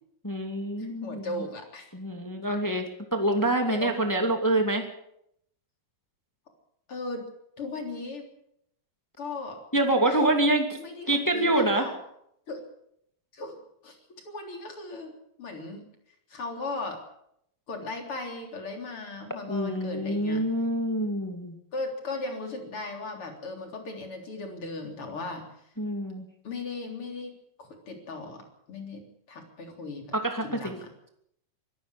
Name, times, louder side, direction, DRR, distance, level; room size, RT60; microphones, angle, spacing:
voice 1, 0.2-1.3 1.9-2.9 3.1-4.8 9.7-10.6 11.1-11.9 19.5-21.6 25.8-26.2 30.1-30.7, right 1 dB, 5° left, 4 dB, 2.0 m, -26 dB
voice 2, 0.8-1.9 3.6-4.0 6.9-7.3 7.6-8.3 9.2-9.6 10.1-10.2 10.7-12.0 12.5-12.6 13.3-14.0 14.2-15.9 16.3-17.0 17.7-20.4 21.7-25.5 26.4-30.1 30.4-31.1, left 3 dB, 40° left, 4 dB, 4.3 m, -37 dB
24.5 x 13.5 x 8.4 m, 0.75 s
omnidirectional pair, 3.7 m